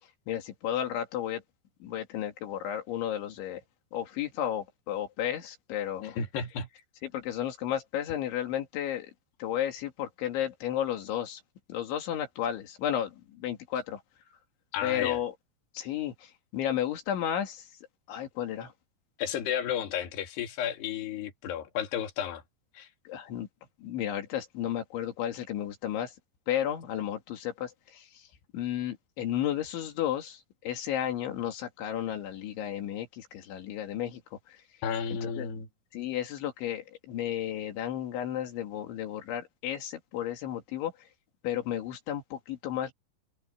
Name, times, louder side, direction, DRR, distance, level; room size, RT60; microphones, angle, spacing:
voice 1, 0.3-1.4 1.8-3.6 3.9-6.2 7.0-9.1 9.4-11.4 11.7-14.0 14.8-15.3 15.7-17.7 18.1-18.7 23.1-23.5 23.8-26.1 26.5-28.3 28.5-34.6 35.1-35.5 35.9-41.1 41.4-42.9, left 10 dB, 85° left, 4.7 m, -33 dB
voice 2, 6.0-6.7 14.7-15.2 19.2-22.4 22.7-22.9 34.8-35.7, left 8 dB, 65° left, 4.6 m, -32 dB
omnidirectional pair, 5.2 m